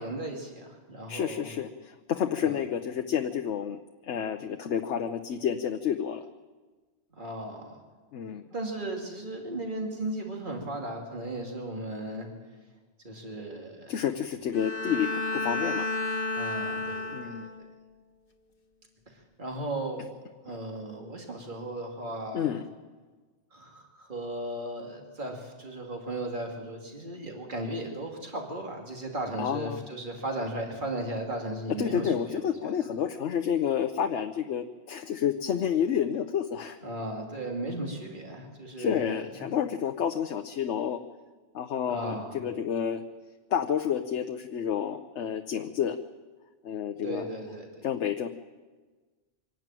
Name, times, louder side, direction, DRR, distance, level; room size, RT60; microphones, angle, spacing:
voice 1, 0.0-1.5 2.4-2.5 7.2-7.7 8.5-12.3 13.0-14.0 16.3-17.5 19.1-20.2 20.4-22.6 23.5-32.5 36.8-39.4 41.9-42.4 47.0-47.7, right 1 dB, 45° right, 1 dB, 2.9 m, -36 dB
voice 2, 1.1-3.8 4.0-6.2 8.1-8.4 13.9-15.9 17.1-17.5 22.3-22.6 29.4-29.8 31.8-36.8 38.8-41.0 41.5-43.0 43.5-46.0 46.6-47.3 47.8-48.3, left 8 dB, 80° left, 6 dB, 1.1 m, -29 dB
Bowed string instrument, 14.5-17.7, left 2 dB, 50° left, 1.4 m, -32 dB
24.5 x 12.0 x 9.0 m, 1.4 s
omnidirectional pair, 1.2 m